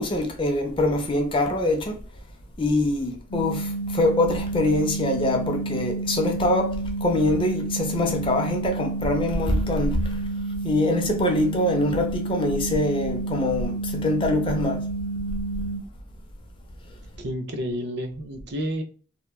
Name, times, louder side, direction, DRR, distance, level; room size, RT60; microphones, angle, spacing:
voice 1, 0.0-2.0 2.6-10.3 10.6-14.8, left 1 dB, 25° left, 0.4 m, -24 dB
sound 1, 3.3-15.8, right 3 dB, 45° left, 0.8 m, -30 dB
voice 2, 17.2-18.8, equal, 50° right, 0.5 m, -30 dB
2.8 x 2.2 x 2.2 m
head